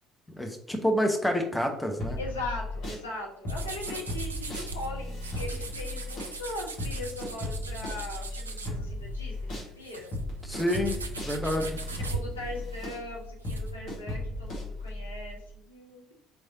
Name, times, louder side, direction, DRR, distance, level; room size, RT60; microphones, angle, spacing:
voice 1, 0.4-2.2 10.5-10.9 11.2-11.8, equal, 5° left, 3 dB, 0.7 m, -28 dB
voice 2, 1.9-10.1 11.9-16.1, left 2 dB, 80° left, -3 dB, 0.9 m, -40 dB
sound 1, 2.0-3.0 3.5-9.7 10.1-15.3, left 1 dB, 45° left, 1.6 m, -36 dB
sound 2, 3.5-4.9 5.2-9.2 9.5-13.7, right 4 dB, 80° right, 0.3 m, -41 dB
4.5 x 3.3 x 2.7 m, 0.72 s
figure-of-eight pair, 55°, 0 cm